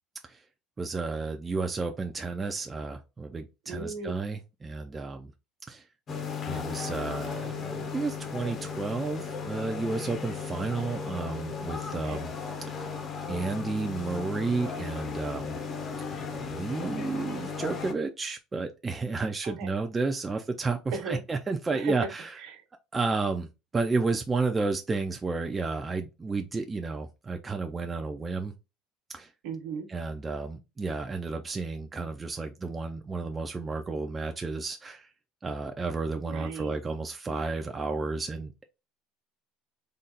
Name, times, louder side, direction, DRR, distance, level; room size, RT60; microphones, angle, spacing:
voice 1, 0.8-5.3 5.7-5.8 6.5-12.3 12.7-12.9 13.3-15.6 16.1-22.3 22.9-28.5 29.1-29.3 29.9-35.1 35.4-38.7, right 3 dB, 15° right, 0.3 m, -32 dB
voice 2, 3.7-4.1 11.9-12.2 19.4-19.7 20.9-21.2 21.7-21.9 22.5-22.6 29.4-29.9 36.2-36.8, right 4 dB, 65° right, 1.0 m, -36 dB
sound 1, 6.1-17.9, left 6 dB, 30° left, 0.6 m, -36 dB
3.8 x 2.3 x 4.0 m
cardioid pair, 170°, 0 cm